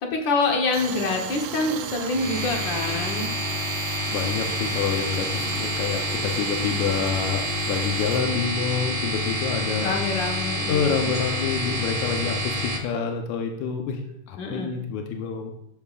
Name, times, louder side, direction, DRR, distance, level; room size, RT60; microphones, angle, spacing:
voice 1, 0.0-3.3 5.1-5.6 9.8-11.1 14.4-14.7, left 3 dB, 55° left, 1 dB, 1.4 m, -26 dB
Tools, 0.7-8.2, right 9 dB, 75° right, 1.6 m, -36 dB
sound 1, 2.1-12.8, left 1 dB, 60° right, 2.5 m, -28 dB
voice 2, 4.1-9.9 10.7-14.0 14.3-15.5, left 6 dB, 80° left, 3 dB, 2.2 m, -27 dB
12.5 x 7.1 x 2.4 m, 0.79 s
omnidirectional pair, 3.4 m